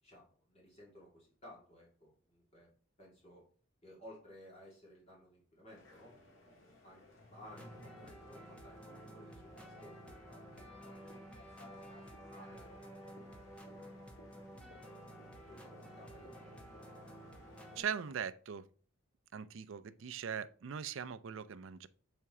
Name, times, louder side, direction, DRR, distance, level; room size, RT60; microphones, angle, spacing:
voice 1, 0.0-2.7 3.0-3.4 3.8-6.1 6.8-11.2 12.0-13.5 15.5-16.6, equal, 30° left, 2.2 m, -58 dB
sound 1, 5.7-18.1, left 1 dB, 70° left, 1.7 m, -59 dB
sound 2, 7.4-17.8, equal, 5° left, 0.9 m, -53 dB
voice 2, 17.8-18.7 19.3-21.9, right 7 dB, 65° right, 0.4 m, -40 dB
6.8 x 4.4 x 3.6 m
head